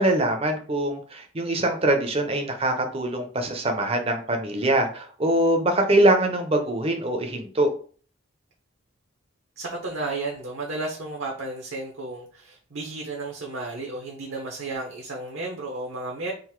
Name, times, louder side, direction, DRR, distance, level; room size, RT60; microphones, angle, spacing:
voice 1, 0.0-7.7, right 1 dB, 25° right, 5 dB, 0.6 m, -23 dB
voice 2, 9.6-16.3, right 2 dB, 65° right, -1 dB, 0.8 m, -33 dB
3.8 x 2.5 x 4.5 m, 0.43 s
head